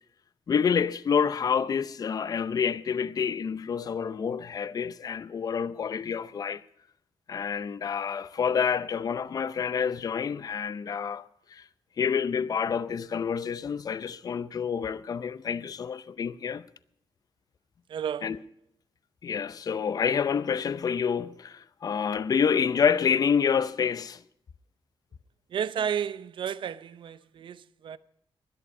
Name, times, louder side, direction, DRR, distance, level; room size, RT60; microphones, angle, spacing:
voice 1, 0.5-6.6 7.3-11.6 12.0-16.6 18.2-18.4 19.2-24.2, left 6 dB, 45° left, 0.6 m, -28 dB
voice 2, 17.9-18.4 25.5-28.0, right 8 dB, 65° right, 0.7 m, -32 dB
20.0 x 11.0 x 5.4 m
wide cardioid pair, 160°, 9 cm